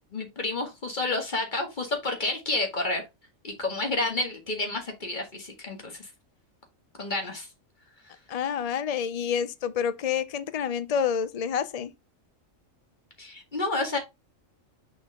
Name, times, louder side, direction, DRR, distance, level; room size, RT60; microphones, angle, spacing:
voice 1, 0.1-3.0 3.4-6.1 7.0-7.5 13.2-14.0, left 2 dB, 35° left, 2.1 m, -30 dB
voice 2, 8.3-11.9, left 7 dB, 65° left, 0.3 m, -28 dB
6.5 x 4.7 x 3.5 m
omnidirectional pair, 1.4 m